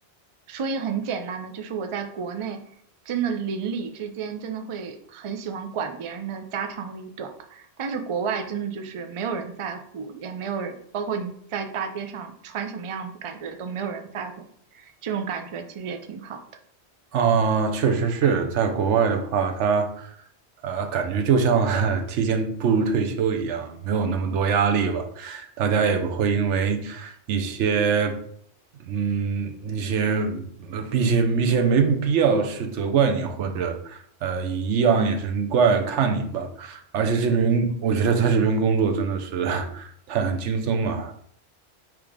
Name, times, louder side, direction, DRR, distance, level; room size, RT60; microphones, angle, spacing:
voice 1, 0.5-2.6 3.1-14.5 14.7-16.4, right 6 dB, 55° right, 0.3 m, -31 dB
voice 2, 17.1-20.1 20.6-28.2 28.9-41.1, right 5 dB, 90° right, 1.0 m, -23 dB
3.6 x 3.0 x 4.8 m
omnidirectional pair, 1.2 m